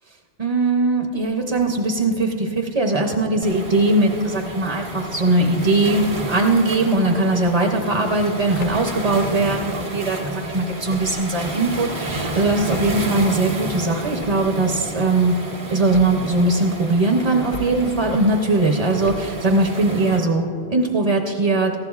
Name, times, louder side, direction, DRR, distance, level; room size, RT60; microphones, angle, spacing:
voice 1, 0.4-15.3 15.7-21.8, right 2 dB, 35° right, 2 dB, 0.7 m, -20 dB
Waves surf, 3.4-20.2, right 2 dB, 85° right, 1.7 m, -31 dB
sound 1, 8.6-9.0 10.9-11.3 12.7-13.1 14.2-14.6 15.9-16.4 17.5-18.0 19.0-19.5, left 4 dB, 60° left, 0.7 m, -37 dB
19.5 x 14.5 x 2.4 m, 2.9 s
omnidirectional pair, 1.1 m